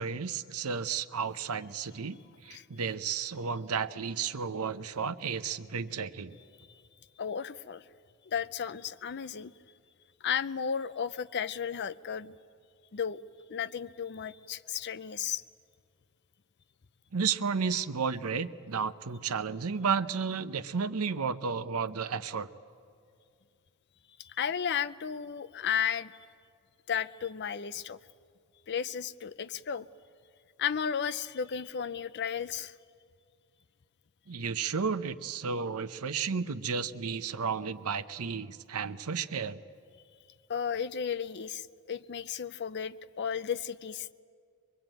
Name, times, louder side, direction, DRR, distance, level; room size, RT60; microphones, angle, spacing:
voice 1, 0.0-6.4 17.1-22.5 34.3-39.6, right 6 dB, 75° right, 13 dB, 0.8 m, -32 dB
voice 2, 7.2-7.8 8.3-9.5 10.2-12.3 12.9-13.2 13.5-15.4 24.2-26.1 26.9-28.0 28.7-29.9 30.6-32.7 40.5-44.1, left 8 dB, 50° left, 15 dB, 0.5 m, -34 dB
23.5 x 22.0 x 9.0 m, 2.3 s
head